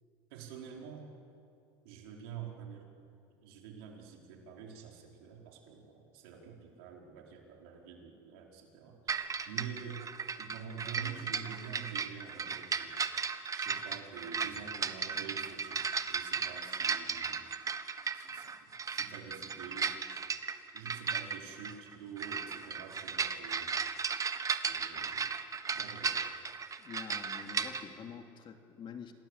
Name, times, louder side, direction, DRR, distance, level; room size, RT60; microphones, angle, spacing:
voice 1, 0.3-1.2 1.8-2.9 3.4-9.2 9.4-10.0 10.4-13.0 13.5-15.8 16.1-17.4 18.1-20.0 20.7-23.8 24.6-25.3 25.7-26.2, right 7 dB, 80° right, 0 dB, 4.8 m, -47 dB
sound 1, 9.1-27.8, right 5 dB, 30° right, 1.4 m, -36 dB
voice 2, 26.8-29.1, left 6 dB, 40° left, 5 dB, 2.7 m, -47 dB
27.5 x 18.5 x 8.3 m, 2.4 s
supercardioid pair, 90°, 12 cm